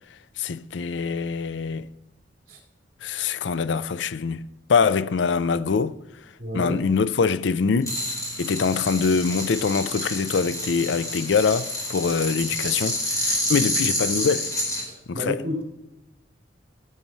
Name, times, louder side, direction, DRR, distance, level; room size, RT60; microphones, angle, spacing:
voice 1, 0.4-1.9 3.0-4.4 4.7-6.0 6.5-7.9 8.4-14.5 15.1-15.4, left 5 dB, 80° left, 0.5 m, -24 dB
voice 2, 6.4-6.8 14.8-15.6, equal, 55° right, 3.3 m, -31 dB
sound 1, 7.8-14.8, left 1 dB, 20° left, 3.8 m, -28 dB
14.5 x 8.2 x 3.1 m
head